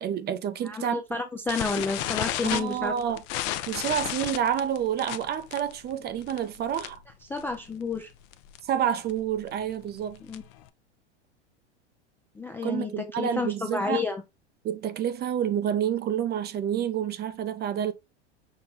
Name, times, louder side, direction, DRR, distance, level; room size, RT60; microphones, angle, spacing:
voice 1, 0.0-1.0 1.8-1.9 2.4-3.2 3.7-7.0 8.7-10.2 12.6-14.0 14.6-17.9, right 9 dB, 30° right, 0.6 m, -28 dB
voice 2, 0.6-2.9 7.3-8.1 10.2-10.4 12.4-14.2, left 4 dB, 5° left, 0.3 m, -30 dB
sound 1, 1.5-7.1 7.4-7.7 7.9-8.0 8.3-8.6 9.1-10.6, left 13 dB, 50° left, 0.6 m, -33 dB
6.1 x 2.2 x 3.9 m
hypercardioid pair, 100°, 34 cm